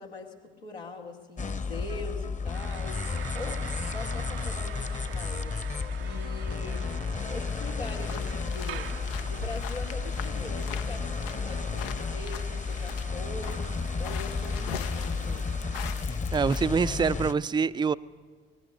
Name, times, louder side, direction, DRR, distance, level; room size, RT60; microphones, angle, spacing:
voice 1, 0.0-5.6 6.0-15.5, left 3 dB, 80° left, 0 dB, 2.4 m, -42 dB
sound 1, 1.4-17.3, left 4 dB, 25° left, 1.1 m, -32 dB
sound 2, 2.5-16.0, right 13 dB, 75° right, 0.7 m, -45 dB
sound 3, 7.8-16.7 17.1-17.3, left 11 dB, 65° left, 0.8 m, -43 dB
voice 2, 16.0-18.0, right 5 dB, 15° right, 15 dB, 0.5 m, -26 dB
21.5 x 19.5 x 6.6 m, 1.5 s
figure-of-eight pair, 50°, 30 cm